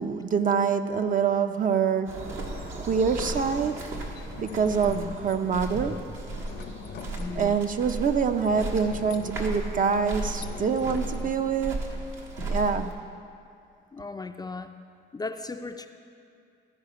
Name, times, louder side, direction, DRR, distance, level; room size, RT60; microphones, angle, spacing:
voice 1, 0.0-2.2 2.8-3.8 4.4-6.1 7.4-11.8 12.5-12.9, right 6 dB, 45° right, 8 dB, 0.5 m, -25 dB
sound 1, 2.1-12.9, right 2 dB, 75° right, 1.4 m, -35 dB
sound 2, 4.2-5.5 6.3-7.6 8.3-12.2, left 7 dB, 60° left, 0.6 m, -43 dB
voice 2, 4.8-5.2 7.2-7.6 13.9-14.7 15.1-15.9, left 3 dB, 20° left, 7 dB, 0.3 m, -36 dB
13.5 x 4.9 x 4.9 m, 2.4 s
cardioid pair, 90°, 20 cm